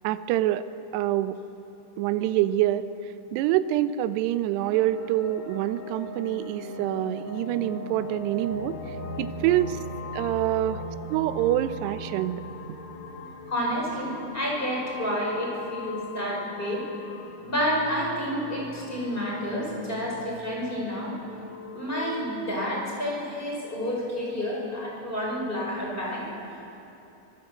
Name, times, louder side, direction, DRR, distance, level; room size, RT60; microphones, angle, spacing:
voice 1, 0.0-0.7 0.9-1.4 2.0-2.9 3.3-8.8 9.2-9.8 10.1-10.8 11.1-12.4, right 13 dB, 80° right, 12 dB, 2.5 m, -26 dB
sound 1, 4.7-22.6, left 2 dB, 90° left, 4.1 m, -40 dB
voice 2, 13.5-16.8 17.4-21.1 21.7-26.2, equal, 10° left, -3 dB, 5.5 m, -29 dB
26.0 x 17.5 x 8.0 m, 2.9 s
omnidirectional pair, 5.5 m